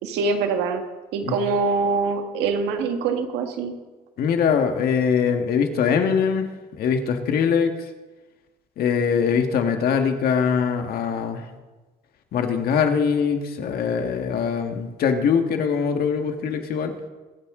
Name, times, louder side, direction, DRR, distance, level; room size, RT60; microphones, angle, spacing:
voice 1, 0.0-0.8 1.1-3.7, right 4 dB, 90° right, 5 dB, 1.8 m, -24 dB
voice 2, 4.2-6.5 6.8-7.9 8.8-11.4 12.3-16.9, left 6 dB, 65° left, 5 dB, 1.8 m, -22 dB
23.5 x 8.7 x 3.9 m, 1.2 s
cardioid pair, 110°, 17 cm